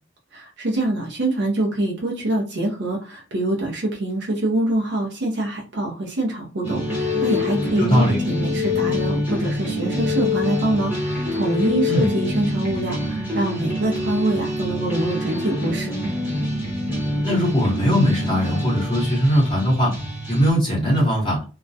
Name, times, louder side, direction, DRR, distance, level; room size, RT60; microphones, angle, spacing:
voice 1, 0.3-15.9, right 1 dB, 55° right, -1 dB, 0.5 m, -25 dB
sound 1, 6.6-20.5, equal, 10° right, 0.8 m, -26 dB
sound 2, 6.7-7.9 8.2-9.4 9.7-10.9 11.3-12.4, left 13 dB, 85° left, 0.4 m, -27 dB
voice 2, 7.8-8.2 11.9-12.1 17.2-19.9 20.3-21.4, equal, 25° left, -6 dB, 0.8 m, -20 dB
2.2 x 2.1 x 2.6 m, 0.36 s
head